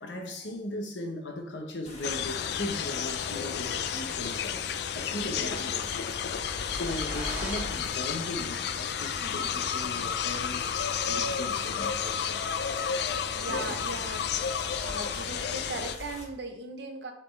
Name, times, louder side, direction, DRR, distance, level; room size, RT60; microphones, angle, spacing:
voice 1, 0.0-12.4 13.5-13.8, left 1 dB, 80° left, 1.1 m, -38 dB
sound 1, 1.9-16.3, left 2 dB, 35° left, 1.2 m, -45 dB
sound 2, 2.0-15.9, left 7 dB, 60° left, 0.4 m, -32 dB
voice 2, 5.2-5.8 9.2-9.5 13.4-14.3 14.8-17.1, right 2 dB, 65° right, 0.9 m, -38 dB
sound 3, 6.2-8.5, equal, 10° right, 1.3 m, -39 dB
6.8 x 5.9 x 3.3 m
head